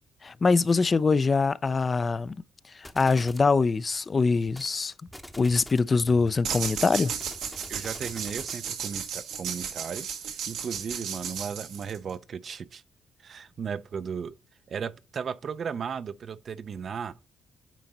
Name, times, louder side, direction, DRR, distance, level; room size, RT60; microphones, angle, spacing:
voice 1, 0.2-2.3 2.7-4.9 5.4-7.1, left 4 dB, 35° left, 0.4 m, -23 dB
sound 1, 2.8-3.5 4.5-4.8 5.1-5.9 6.5-8.7, equal, 5° left, 0.7 m, -46 dB
sound 2, 6.4-12.1, right 7 dB, 85° right, 1.4 m, -34 dB
voice 2, 7.7-12.8 13.2-14.4 14.7-17.2, right 6 dB, 50° right, 0.5 m, -36 dB
9.2 x 3.8 x 4.1 m
cardioid pair, 90°, 0 cm